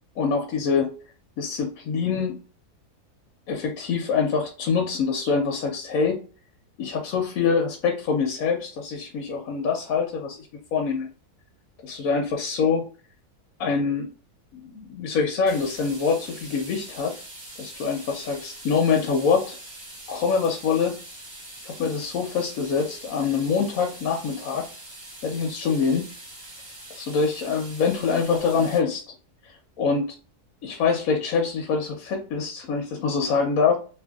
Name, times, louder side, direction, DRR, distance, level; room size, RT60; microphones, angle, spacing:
voice 1, 0.2-0.9 1.4-2.4 3.5-6.2 6.8-11.1 11.8-12.9 13.6-14.1 14.5-17.2 17.6-19.6 20.1-21.0 21.6-24.7 25.2-26.1 27.0-29.0 29.4-30.2 30.6-33.8, left 5 dB, 70° left, 2 dB, 1.0 m, -25 dB
sound 1, 15.5-28.8, right 1 dB, 35° right, 0.8 m, -43 dB
2.8 x 2.5 x 2.3 m, 0.37 s
omnidirectional pair, 1.6 m